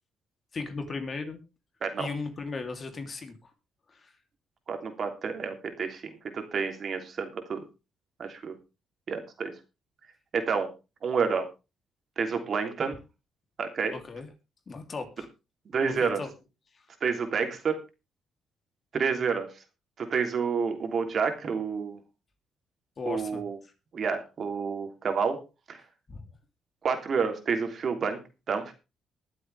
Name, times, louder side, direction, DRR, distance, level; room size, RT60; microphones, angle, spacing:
voice 1, 0.5-1.4 2.0-3.5 3.9-4.1 13.9-14.3 14.7-15.3 15.8-16.3 23.0-23.4 26.1-26.2, left 4 dB, 40° left, 6 dB, 3.1 m, -36 dB
voice 2, 4.7-7.6 8.2-8.5 9.1-9.5 10.3-10.7 11.0-11.5 12.2-13.0 13.6-13.9 15.7-16.2 17.0-17.8 18.9-19.5 20.0-22.0 23.0-23.6 23.9-25.4 25.7-25.8 26.8-28.2 28.5-28.7, right 5 dB, 50° right, 6 dB, 3.2 m, -29 dB
22.0 x 7.7 x 3.4 m, 0.29 s
cardioid pair, 90°, 0 cm